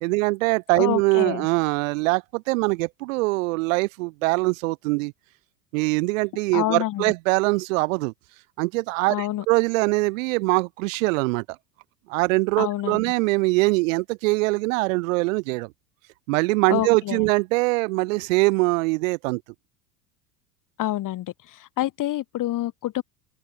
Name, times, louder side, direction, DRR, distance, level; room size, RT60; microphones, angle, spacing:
voice 1, 0.0-5.1 5.7-8.1 8.6-11.4 12.1-15.7 16.3-19.4, right 25 dB, 60° right, 1.1 m, -23 dB
voice 2, 0.8-1.5 6.5-7.0 9.1-9.4 12.6-13.0 16.7-17.2 20.8-23.0, left 14 dB, 45° left, 4.2 m, -27 dB
open air
hypercardioid pair, 80°, 44 cm